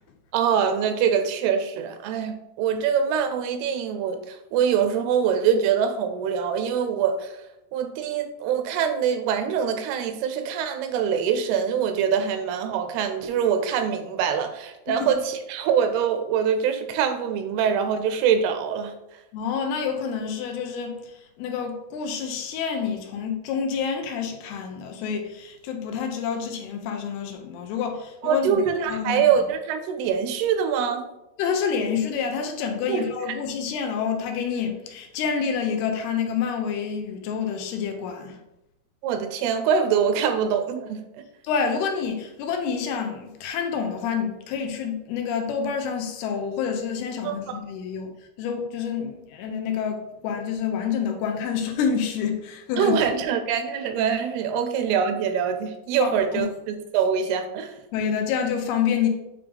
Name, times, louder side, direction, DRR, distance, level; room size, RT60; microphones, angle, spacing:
voice 1, 0.3-7.4 7.7-18.9 28.2-31.1 32.9-33.1 39.0-41.2 47.2-47.4 52.8-57.8, right 7 dB, 85° right, 8 dB, 2.5 m, -24 dB
voice 2, 19.3-28.6 28.9-29.4 31.4-38.4 41.4-48.1 48.4-52.9 54.5-54.6 56.0-56.5 57.9-59.1, left 6 dB, 80° left, 4 dB, 2.7 m, -28 dB
8.3 x 3.4 x 3.4 m, 0.91 s
omnidirectional pair, 4.6 m